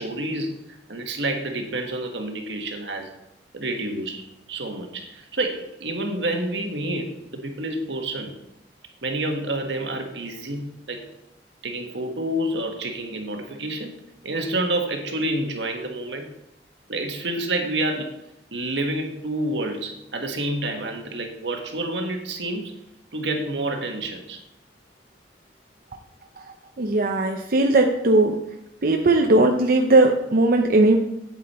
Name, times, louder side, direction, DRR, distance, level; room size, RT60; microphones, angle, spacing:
voice 1, 0.0-3.1 3.5-8.3 9.0-11.1 11.6-16.3 16.9-18.1 18.5-22.8 23.1-24.4, right 1 dB, 80° right, 4 dB, 1.6 m, -28 dB
voice 2, 26.8-28.4 28.8-31.0, right 2 dB, 55° right, 3 dB, 0.7 m, -18 dB
9.0 x 8.6 x 4.3 m, 0.84 s
head